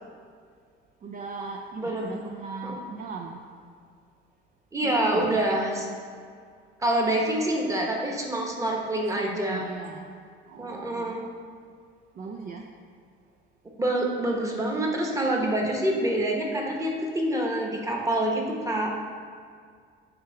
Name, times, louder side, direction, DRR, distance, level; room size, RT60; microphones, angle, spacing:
voice 1, 1.0-3.4 4.8-5.4 9.2-10.1 10.5-11.3 12.2-12.7, right 4 dB, 45° right, 2 dB, 0.5 m, -38 dB
voice 2, 1.8-2.1 2.6-2.8 4.7-5.9 6.8-9.7 10.6-11.3 13.8-19.0, right 1 dB, 15° right, 0 dB, 1.2 m, -26 dB
7.8 x 3.8 x 5.7 m, 2.1 s
cardioid pair, 125°, 20 cm